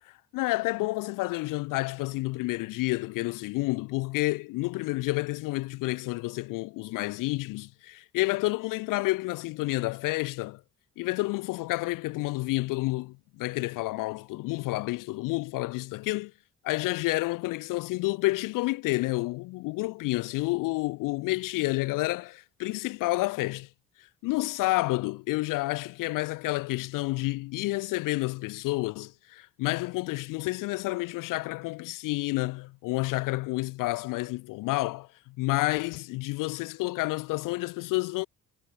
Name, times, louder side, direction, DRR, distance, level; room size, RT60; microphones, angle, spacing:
voice 1, 0.3-10.6 11.0-16.3 16.6-23.7 24.0-38.3, left 21 dB, 45° left, 0.4 m, -30 dB
figure-of-eight pair, 45°, 48 cm